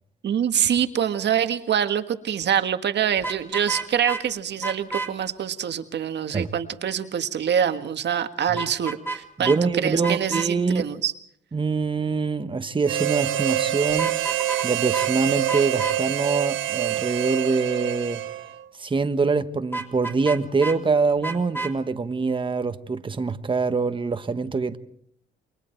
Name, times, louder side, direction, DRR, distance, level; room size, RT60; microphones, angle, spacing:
voice 1, 0.2-9.5 9.8-11.1, right 9 dB, 60° right, 1.7 m, -25 dB
Vehicle horn car horn honking, 3.2-4.2 4.6-5.1 8.6-9.2 9.4-9.6 10.0-10.5 13.9-14.7 14.9-15.1 15.5-16.0 19.7-20.8 21.2-21.7, right 3 dB, 10° left, 3.0 m, -30 dB
voice 2, 9.4-10.8 11.5-14.2 14.6-18.2 18.8-24.8, right 4 dB, 25° right, 1.3 m, -24 dB
Harmonica, 12.9-18.6, right 13 dB, 85° right, 1.4 m, -26 dB
29.0 x 22.5 x 4.5 m
cardioid pair, 90°, 20 cm